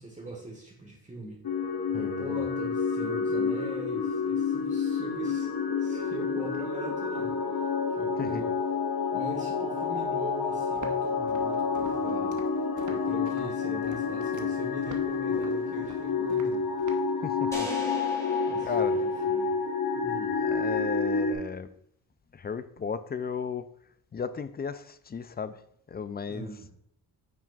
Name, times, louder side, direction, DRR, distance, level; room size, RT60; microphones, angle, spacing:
voice 1, 0.0-1.4 1.9-5.5 5.8-7.3 7.9-8.5 9.1-12.4 12.9-16.7 18.5-19.5 19.9-20.4 26.2-26.7, right 2 dB, 15° right, 1.6 m, -42 dB
sound 1, 1.4-21.3, left 5 dB, 55° left, 1.3 m, -29 dB
voice 2, 1.9-2.5 8.2-8.4 17.2-17.7 18.6-19.0 20.4-21.7 22.3-23.7 24.1-25.6 25.9-26.5, left 6 dB, 25° left, 0.4 m, -35 dB
Walk footsteps, 10.7-17.1, right 4 dB, 45° right, 1.1 m, -47 dB
sound 2, 17.5-19.8, equal, 5° left, 2.0 m, -41 dB
9.4 x 5.9 x 2.5 m
cardioid pair, 75°, 43 cm